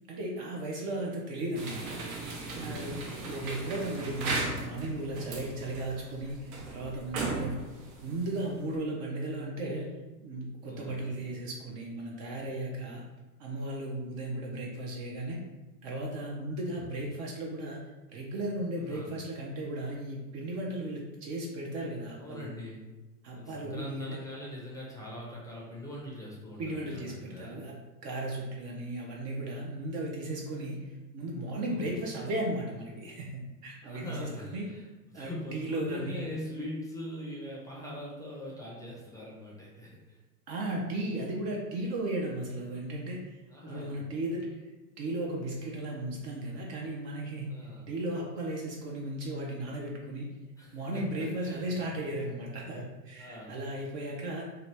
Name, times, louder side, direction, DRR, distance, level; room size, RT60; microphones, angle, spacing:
voice 1, 0.0-2.0 2.6-7.6 8.0-9.9 10.2-13.0 13.4-15.4 15.8-17.8 18.1-22.5 23.2-24.1 26.6-34.7 35.1-36.2 40.5-44.7 45.0-47.6 47.9-50.3 50.7-54.5, right 1 dB, 35° right, -1 dB, 0.5 m, -36 dB
sound 1, 1.6-8.8, right 3 dB, 60° right, 0.9 m, -37 dB
voice 2, 2.5-3.1 10.7-11.0 18.9-19.1 22.2-22.8 23.3-27.6 31.7-32.0 33.8-34.8 35.1-40.2 43.5-44.0 47.5-47.9 50.6-51.9 53.2-53.7, left 1 dB, 10° left, -5 dB, 0.6 m, -42 dB
2.8 x 2.4 x 3.2 m, 1.1 s
hypercardioid pair, 95°, 47 cm